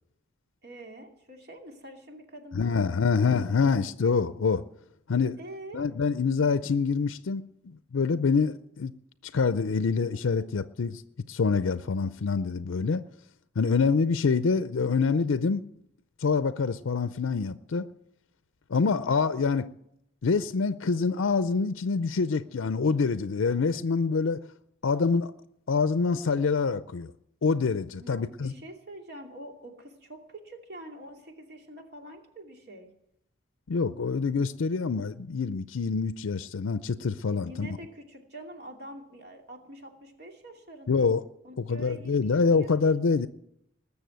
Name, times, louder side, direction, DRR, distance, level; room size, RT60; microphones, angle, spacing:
voice 1, 0.6-3.8 5.4-5.9 28.0-32.9 37.3-41.1 41.4-42.8, right 1 dB, 55° right, 2.6 m, -46 dB
voice 2, 2.5-4.6 5.1-5.4 5.7-8.9 9.2-11.0 11.3-13.0 13.6-15.7 16.2-17.9 18.7-19.7 20.2-24.4 24.8-25.3 25.7-27.1 27.4-28.5 33.7-37.8 40.9-41.2 41.6-43.3, left 5 dB, 85° left, 0.5 m, -26 dB
20.5 x 6.9 x 9.2 m
head